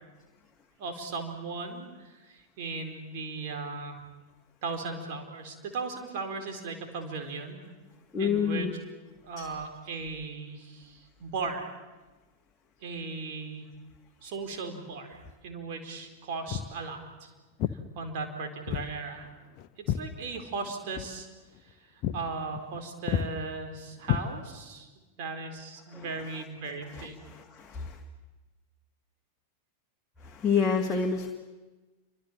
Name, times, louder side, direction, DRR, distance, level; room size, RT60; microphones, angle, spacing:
voice 1, 0.8-4.0 4.6-7.6 8.2-8.7 9.2-11.7 12.8-13.7 14.2-17.3 18.0-19.3 19.9-21.3 21.7-21.8 22.1-24.9 25.2-27.2, right 4 dB, 50° right, 5 dB, 4.4 m, -37 dB
voice 2, 8.1-8.7 9.4-9.5 25.9-26.0 26.9-28.0 30.2-31.3, left 6 dB, 15° left, 1 dB, 2.1 m, -28 dB
Walk footsteps, 16.5-16.8 17.6-17.8 18.7-18.9 19.2-20.7 20.9-21.1 21.5-21.7 22.0-22.2 22.5-22.8 23.1-23.3 24.0-24.7, left 10 dB, 40° left, 1.0 m, -31 dB
28.5 x 25.0 x 7.6 m, 1.2 s
figure-of-eight pair, 90°, 0 cm